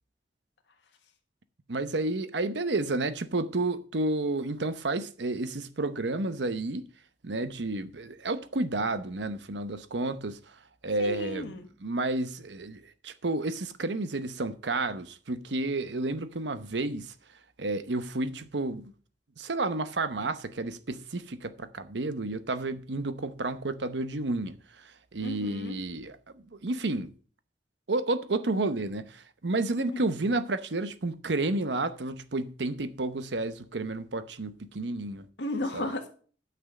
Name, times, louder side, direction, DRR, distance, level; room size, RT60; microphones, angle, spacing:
voice 1, 1.7-6.8 7.2-10.4 10.8-11.5 11.8-17.1 17.6-18.8 19.4-27.1 27.9-35.3 35.7-35.9, right 2 dB, 80° right, 0.9 m, -31 dB
voice 2, 11.0-11.7 25.2-25.8 29.8-30.1 35.4-36.1, left 1 dB, 90° left, 1.5 m, -34 dB
9.2 x 6.1 x 6.6 m
head